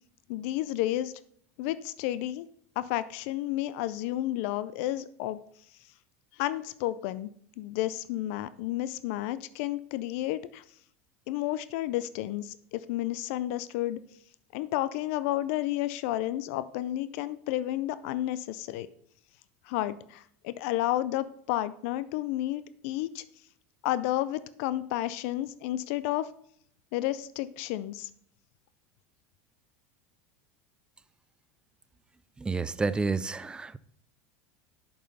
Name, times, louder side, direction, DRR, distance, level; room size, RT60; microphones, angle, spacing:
voice 1, 0.3-1.1 1.6-2.5 2.8-5.4 6.4-7.3 7.6-10.6 11.3-14.0 14.5-18.9 19.7-23.2 23.8-26.3 26.9-28.1, left 14 dB, 70° left, 0.4 m, -31 dB
voice 2, 32.4-33.8, right 4 dB, 10° right, 0.3 m, -30 dB
6.9 x 5.4 x 5.2 m
supercardioid pair, 120°, 7 cm